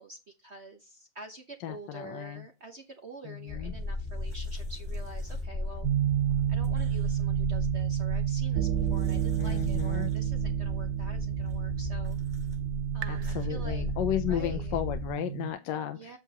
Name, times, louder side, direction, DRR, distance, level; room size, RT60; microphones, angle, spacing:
voice 1, 0.0-5.9 6.5-12.2 12.9-13.8 14.2-14.8 15.9-16.2, right 3 dB, 50° right, 4 dB, 0.8 m, -46 dB
voice 2, 1.6-2.4 3.2-3.7 9.4-10.1 13.1-16.2, left 11 dB, 70° left, 8 dB, 1.2 m, -34 dB
sound 1, 3.5-15.1, left 3 dB, ahead, 5.4 m, -36 dB
sound 2, 3.7-5.8 6.2-7.4 8.6-10.2 11.4-12.6 13.0-13.4, right 1 dB, 20° right, 2.7 m, -61 dB
sound 3, 5.8-15.5, right 13 dB, 75° right, 1.0 m, -30 dB
8.3 x 6.8 x 2.9 m, 0.26 s
omnidirectional pair, 2.3 m